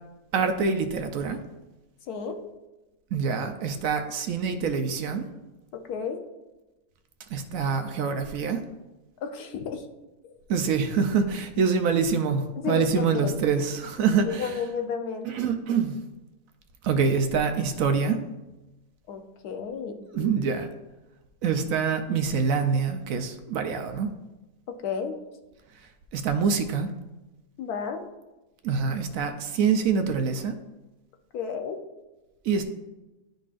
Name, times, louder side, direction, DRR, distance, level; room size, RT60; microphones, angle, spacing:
voice 1, 0.3-1.4 3.1-5.3 7.3-8.6 10.5-14.6 15.3-16.0 16.8-18.2 20.1-20.7 21.4-24.1 25.7-26.9 28.6-30.6 32.4-32.6, right 5 dB, 70° right, 7 dB, 0.9 m, -25 dB
voice 2, 2.1-2.4 5.7-6.2 9.2-9.8 12.6-13.4 14.2-15.3 19.1-20.3 24.8-25.2 27.6-28.0 31.3-31.8, left 6 dB, 80° left, 6 dB, 1.2 m, -32 dB
11.5 x 3.9 x 2.5 m, 1.1 s
omnidirectional pair, 1.6 m